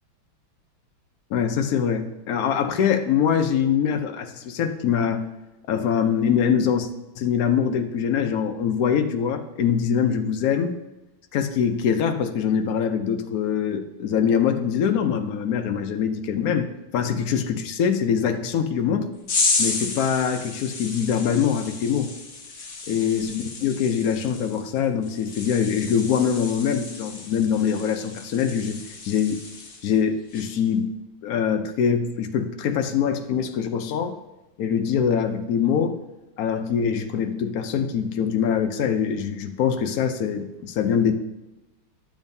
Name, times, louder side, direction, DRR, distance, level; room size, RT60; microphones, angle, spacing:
voice 1, 1.3-5.2 5.7-6.9 7.2-10.7 11.3-19.1 19.6-22.1 22.9-28.8 29.0-29.4 29.8-30.9 31.2-34.2 34.6-36.0 36.4-41.1, left 7 dB, 75° left, 6 dB, 0.8 m, -23 dB
sound 1, 19.3-30.0 30.3-30.7, left 4 dB, 45° left, 1.0 m, -32 dB
11.5 x 7.1 x 2.7 m, 0.99 s
omnidirectional pair, 2.3 m